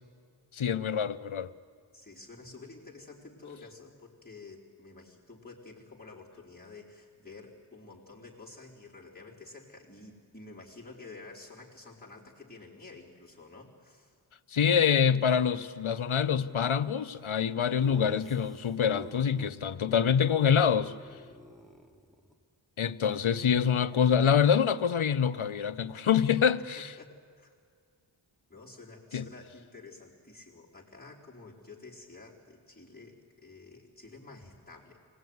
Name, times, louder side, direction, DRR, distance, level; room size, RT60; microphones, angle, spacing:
voice 1, 0.5-1.5 14.5-20.9 22.8-26.9 29.1-29.3, left 7 dB, 80° left, 0.9 m, -26 dB
voice 2, 1.9-14.2 26.8-27.5 28.5-35.0, left 3 dB, 20° left, 3.8 m, -50 dB
Laughter, 17.8-19.5 19.9-20.0 20.3-20.5 20.8-22.3, right 1 dB, ahead, 2.5 m, -49 dB
24.5 x 18.5 x 9.5 m
wide cardioid pair, 45°, 48 cm